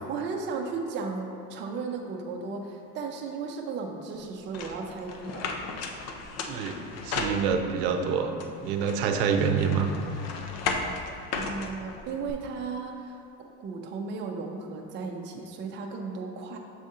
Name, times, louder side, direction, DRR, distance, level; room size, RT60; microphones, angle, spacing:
voice 1, 0.0-5.5 11.3-16.6, right 4 dB, 30° right, 1 dB, 0.5 m, -35 dB
sound 1, 4.5-7.9 8.4-12.3, left 4 dB, 45° left, 0.5 m, -35 dB
voice 2, 7.0-8.3 8.6-9.9, right 6 dB, 85° right, 5 dB, 0.7 m, -26 dB
6.4 x 4.1 x 3.7 m, 2.6 s
cardioid pair, 140°, 36 cm